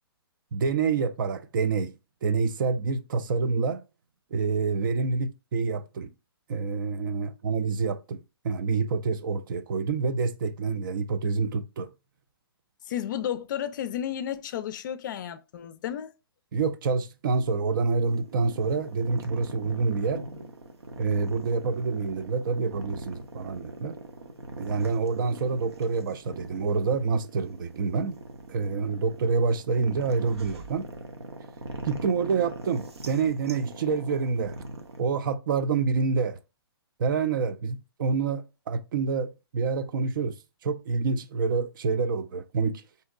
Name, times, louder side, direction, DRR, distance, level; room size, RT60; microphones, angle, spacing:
voice 1, 0.5-1.9 2.2-3.8 4.3-6.1 6.5-11.9 16.5-20.2 21.0-24.0 24.6-28.2 28.5-30.9 31.8-34.6 35.0-36.4 37.0-40.4 40.6-42.8, right 4 dB, 55° right, 0.4 m, -27 dB
voice 2, 12.9-16.1, left 10 dB, 50° left, 0.4 m, -32 dB
sound 1, 17.3-35.0, right 2 dB, 90° right, 0.7 m, -42 dB
3.6 x 2.7 x 2.3 m
hypercardioid pair, 135°, 13 cm